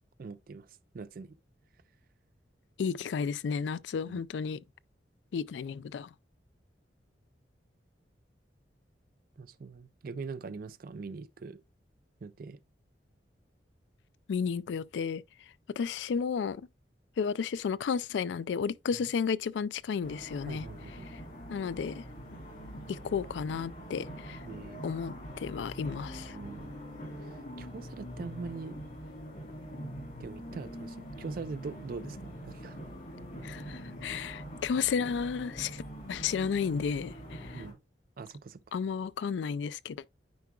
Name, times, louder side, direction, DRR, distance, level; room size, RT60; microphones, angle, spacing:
voice 1, 0.2-1.4 4.1-4.2 9.4-11.6 12.2-12.6 20.5-21.1 24.4-24.8 26.2-26.7 27.6-28.8 30.2-32.8 37.5-37.8 38.2-38.6, right 4 dB, 55° right, 0.4 m, -42 dB
voice 2, 2.8-4.6 5.3-6.1 14.3-15.2 15.8-16.7 17.2-20.6 21.5-22.0 22.9-24.4 24.8-26.4 33.4-35.8 36.1-37.6 38.7-40.1, left 6 dB, 85° left, 0.3 m, -33 dB
sound 1, 20.0-37.7, equal, 50° left, 3.4 m, -44 dB
9.3 x 4.7 x 2.2 m
head